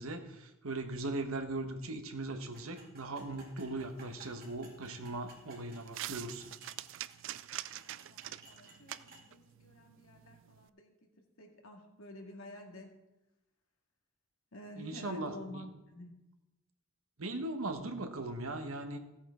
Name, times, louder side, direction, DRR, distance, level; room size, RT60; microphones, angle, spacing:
voice 1, 0.0-6.5 14.8-15.7 17.2-19.0, right 2 dB, 85° right, 6 dB, 1.2 m, -39 dB
sound 1, 2.5-9.3, right 2 dB, 45° right, 2.9 m, -58 dB
sound 2, 3.8-10.7, right 13 dB, 65° right, 0.4 m, -47 dB
voice 2, 7.7-11.1 11.4-12.9 14.5-16.1, left 1 dB, 80° left, 2 dB, 2.0 m, -50 dB
15.5 x 8.7 x 3.7 m, 0.98 s
head